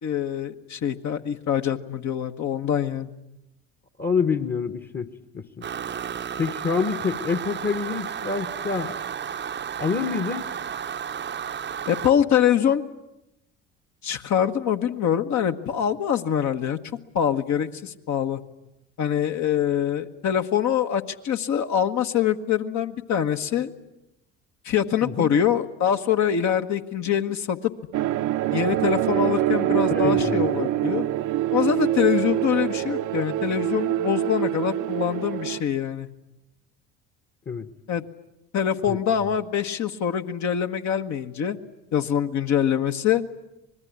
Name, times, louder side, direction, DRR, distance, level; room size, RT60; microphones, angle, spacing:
voice 1, 0.0-3.1 11.9-12.9 14.0-16.8 17.1-18.4 19.0-23.7 24.6-27.7 28.5-31.1 31.5-36.1 37.9-38.0 38.5-41.6 41.9-43.2, left 9 dB, 50° left, 6 dB, 1.4 m, -24 dB
voice 2, 4.0-5.1 5.3-5.6 6.4-8.9 9.8-10.5 25.0-25.3 29.8-30.5 37.5-37.7 38.9-39.0, left 5 dB, 25° left, 9 dB, 1.4 m, -27 dB
sound 1, 5.6-12.1, right 8 dB, 30° right, 0.9 m, -33 dB
sound 2, 27.9-35.6, right 14 dB, 55° right, 0.9 m, -25 dB
25.5 x 20.5 x 9.6 m, 0.91 s
hypercardioid pair, 60°, 36 cm